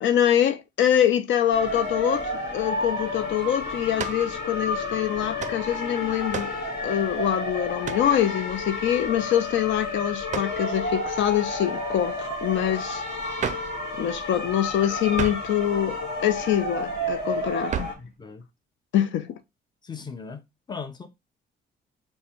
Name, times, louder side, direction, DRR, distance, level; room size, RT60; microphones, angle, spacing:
voice 1, 0.0-6.5 6.8-13.0 14.0-17.9 18.9-19.3, left 10 dB, 70° left, 0.5 m, -24 dB
sound 1, 1.5-17.9, left 1 dB, 55° left, 1.5 m, -31 dB
sound 2, 4.0-4.3 5.4-5.6 6.3-6.6 7.8-8.1 10.3-10.6 13.4-13.8 15.1-15.5 17.7-18.1, right 7 dB, 40° right, 0.4 m, -32 dB
voice 2, 18.0-18.4 19.8-20.4 20.7-21.1, left 5 dB, 20° left, 0.6 m, -38 dB
3.4 x 2.1 x 4.3 m
cardioid pair, 90°, 20 cm